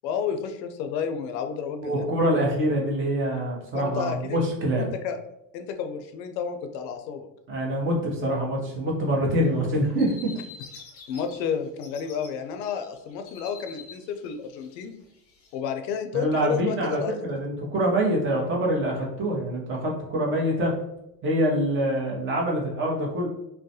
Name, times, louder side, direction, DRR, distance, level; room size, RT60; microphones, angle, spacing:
voice 1, 0.0-2.0 3.7-4.4 4.8-5.2 5.5-7.3 11.1-14.9 15.5-17.2, left 7 dB, 85° left, 7 dB, 0.6 m, -31 dB
voice 2, 1.8-4.9 7.5-10.3 16.1-20.7 21.2-23.3, right 1 dB, 25° right, -2 dB, 0.7 m, -25 dB
sound 1, 9.4-11.4 11.7-12.3 12.6-15.6, left 5 dB, 30° left, 0.5 m, -46 dB
2.3 x 2.1 x 2.7 m, 0.83 s
supercardioid pair, 110°, 50 cm